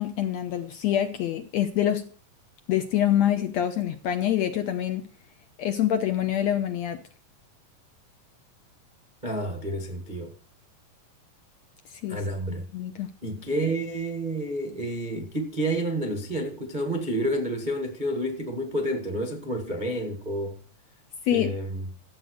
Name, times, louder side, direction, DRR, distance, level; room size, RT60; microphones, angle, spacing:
voice 1, 0.0-2.1 2.7-5.0 5.6-7.0 12.0-12.2 12.5-13.1 21.3-21.5, left 11 dB, 75° left, 1.7 m, -26 dB
voice 2, 9.2-10.3 12.1-12.6 13.2-20.6 21.3-21.9, right 1 dB, 65° right, 0.4 m, -29 dB
13.0 x 8.2 x 6.4 m
omnidirectional pair, 4.1 m